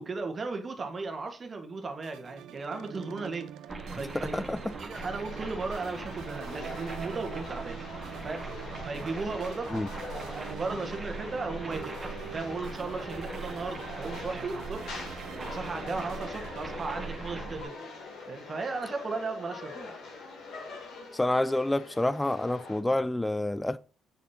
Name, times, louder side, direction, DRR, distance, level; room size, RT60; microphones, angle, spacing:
voice 1, 0.0-3.5 3.9-4.5 4.8-7.8 8.2-8.5 8.8-9.7 10.1-12.0 12.3-14.9 15.4-17.7 18.3-19.9, right 3 dB, 35° right, 1.6 m, -36 dB
sound 1, 2.0-19.4, right 10 dB, 85° right, 0.6 m, -45 dB
sound 2, 3.7-17.6, right 3 dB, 20° right, 1.7 m, -41 dB
sound 3, 4.9-22.8, left 4 dB, 70° left, 3.1 m, -44 dB
voice 2, 21.1-23.8, left 1 dB, 10° left, 0.4 m, -28 dB
7.5 x 6.4 x 2.8 m
cardioid pair, 90°, 0 cm